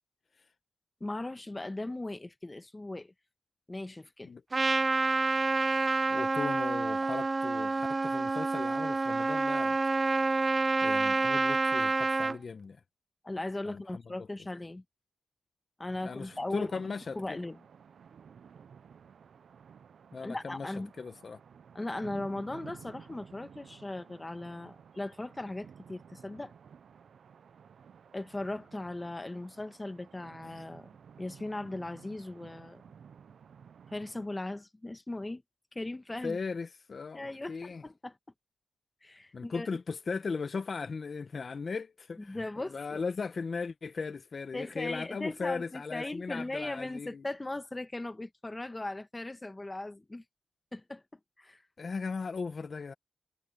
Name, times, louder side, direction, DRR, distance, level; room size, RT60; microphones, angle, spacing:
voice 1, 1.0-3.1 3.7-4.3 13.2-14.8 15.8-16.7 17.1-17.6 20.2-20.9 21.7-26.5 28.1-30.9 31.2-32.8 33.9-35.4 35.7-36.4 37.1-38.1 39.0-39.7 42.3-43.0 44.5-50.2 50.7-51.6, left 2 dB, 20° left, 1.6 m, -38 dB
Trumpet, 4.5-12.4, right 3 dB, 30° right, 0.3 m, -28 dB
voice 2, 6.1-9.8 10.8-12.8 13.7-14.3 16.0-17.4 20.1-21.4 36.2-37.8 39.3-47.3 51.8-52.9, left 4 dB, 50° left, 1.0 m, -38 dB
sound 1, 15.8-34.3, right 7 dB, 70° right, 0.6 m, -54 dB
cardioid pair, 80°, 0 cm